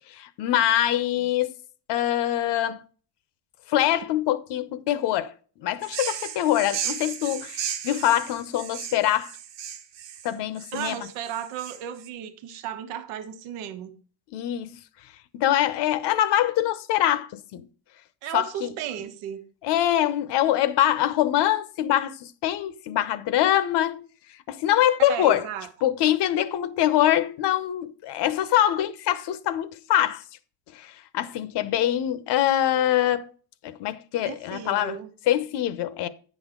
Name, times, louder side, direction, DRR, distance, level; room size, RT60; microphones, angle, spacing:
voice 1, 0.1-1.5 1.9-2.8 3.7-5.3 5.6-9.3 10.2-11.1 14.3-14.7 15.3-17.6 18.3-18.7 19.6-24.0 24.5-25.4 25.8-30.2 30.7-33.2 33.6-35.0 35.3-36.1, left 12 dB, 55° left, 0.8 m, -24 dB
sound 1, 5.8-12.1, right 9 dB, 60° right, 1.3 m, -35 dB
voice 2, 10.7-13.9 18.2-19.4 25.1-25.7 34.2-35.1, right 10 dB, 85° right, 1.3 m, -34 dB
9.4 x 6.3 x 3.7 m
cardioid pair, 150°, 49 cm